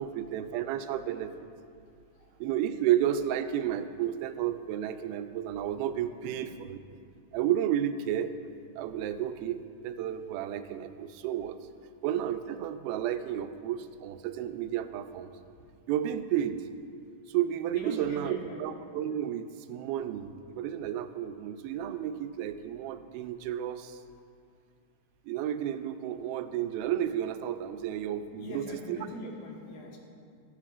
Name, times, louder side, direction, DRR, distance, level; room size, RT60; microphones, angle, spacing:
voice 1, 0.0-1.3 2.4-6.8 7.3-8.4 8.8-11.6 12.0-15.3 15.9-16.7 17.3-24.0 25.3-29.0, right 10 dB, 85° right, 9 dB, 2.4 m, -32 dB
voice 2, 17.7-18.6 28.4-30.0, left 1 dB, 75° left, -1 dB, 3.2 m, -42 dB
20.0 x 8.3 x 2.5 m, 2.3 s
omnidirectional pair, 4.4 m